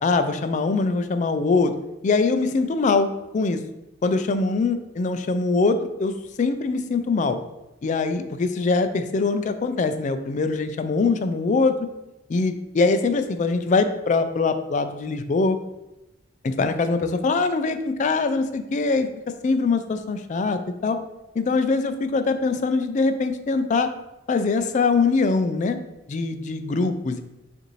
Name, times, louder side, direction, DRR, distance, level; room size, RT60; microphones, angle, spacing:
voice 1, 0.0-1.7 2.0-3.1 3.3-3.6 4.0-6.1 6.4-7.4 7.8-11.8 12.3-15.6 16.4-19.1 19.4-21.0 21.4-23.9 24.3-25.8 26.1-27.2, left 4 dB, 40° left, 9 dB, 0.3 m, -22 dB
6.6 x 2.6 x 3.1 m, 0.96 s
head